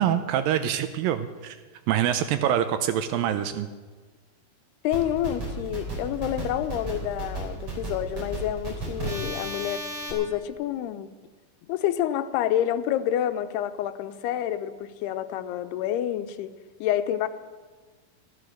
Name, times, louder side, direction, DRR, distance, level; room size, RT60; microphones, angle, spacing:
voice 1, 0.0-1.6 1.9-3.7, right 10 dB, 80° right, 10 dB, 2.2 m, -25 dB
voice 2, 4.8-11.1 11.7-16.5 16.8-17.3, left 11 dB, 90° left, 11 dB, 2.8 m, -28 dB
sound 1, 4.9-10.1, right 2 dB, 35° right, 4.6 m, -33 dB
13.5 x 13.0 x 6.5 m, 1.4 s
omnidirectional pair, 4.5 m